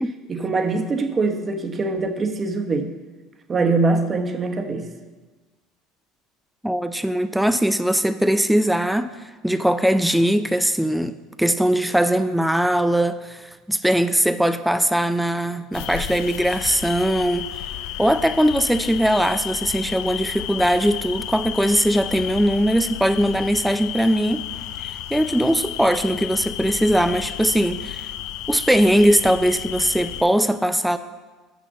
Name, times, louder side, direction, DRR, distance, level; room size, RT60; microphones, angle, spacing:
voice 1, 0.3-2.9 3.5-4.9, right 3 dB, 30° right, 6 dB, 0.9 m, -23 dB
voice 2, 6.6-9.1 9.4-17.5 18.0-24.4 24.8-28.1 28.5-31.0, equal, 5° right, 10 dB, 0.4 m, -20 dB
sound 1, 15.7-30.2, left 12 dB, 70° left, 0.4 m, -32 dB
6.2 x 6.1 x 6.8 m, 1.3 s
supercardioid pair, 95°, 0 cm